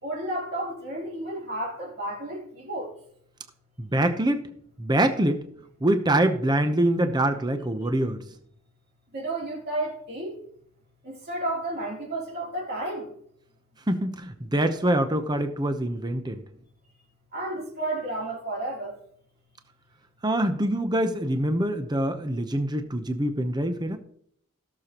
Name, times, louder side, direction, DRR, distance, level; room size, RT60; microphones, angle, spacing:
voice 1, 0.0-2.9 9.1-10.4 11.0-13.1 17.3-19.0, right 1 dB, 45° right, 3.3 m, -32 dB
voice 2, 3.8-4.5 4.8-5.4 5.8-8.2 13.9-16.4 20.2-24.0, right 1 dB, 20° right, 0.8 m, -24 dB
17.0 x 6.8 x 3.0 m
head